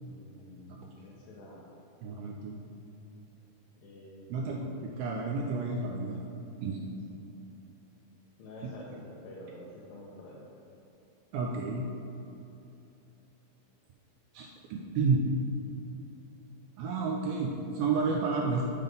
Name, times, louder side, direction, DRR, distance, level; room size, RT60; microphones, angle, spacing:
voice 1, 0.1-1.7 3.8-4.8 8.4-10.5, left 1 dB, 85° left, -5 dB, 3.2 m, -49 dB
voice 2, 2.0-2.6 4.3-4.6 5.0-6.2 6.6-6.8 8.6-8.7 11.3-11.9 14.3-15.3 16.8-18.6, right 4 dB, 80° right, -1 dB, 2.1 m, -31 dB
10.5 x 3.7 x 5.2 m, 2.9 s
omnidirectional pair, 4.8 m